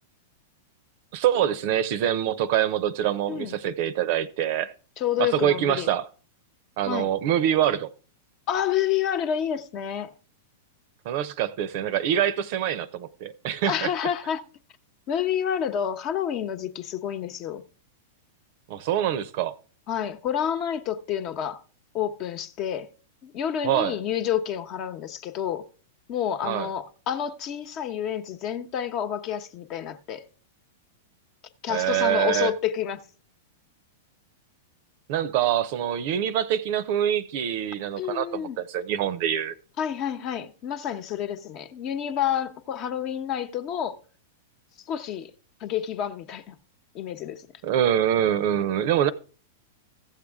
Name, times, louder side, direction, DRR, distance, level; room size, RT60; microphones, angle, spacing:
voice 1, 1.1-4.7 5.2-6.1 6.8-7.9 11.1-13.9 18.7-19.5 23.6-24.0 26.4-26.7 31.7-32.5 35.1-39.5 47.6-49.1, right 10 dB, 55° right, 0.6 m, -25 dB
voice 2, 5.0-5.9 6.9-7.1 8.5-10.1 13.6-14.4 15.1-17.6 19.9-21.6 21.9-22.9 23.2-25.6 26.1-30.2 31.6-33.0 38.0-38.6 39.8-43.9 44.9-45.3 45.6-46.6 46.9-47.5, left 9 dB, 45° left, 0.9 m, -29 dB
14.5 x 7.4 x 3.5 m
hypercardioid pair, 105°, 0 cm